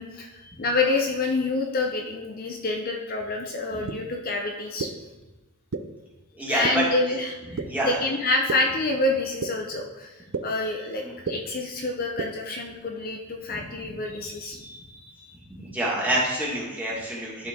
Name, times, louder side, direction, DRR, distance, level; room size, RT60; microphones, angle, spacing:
voice 1, 0.0-4.9 6.5-15.2, left 2 dB, 40° left, 1 dB, 0.7 m, -28 dB
sound 1, 3.9-4.0 4.8-4.9 5.7-5.8 6.6-6.7 7.6-7.7 8.5-8.6 9.4-9.5 10.3-10.4 11.2-11.3 12.2-12.3, right 5 dB, 65° right, 0.5 m, -28 dB
voice 2, 6.4-6.8 7.5-7.9 11.0-11.1 13.8-13.9 15.5-17.5, right 1 dB, 10° right, -5 dB, 1.8 m, -27 dB
12.0 x 4.3 x 3.7 m, 1.1 s
head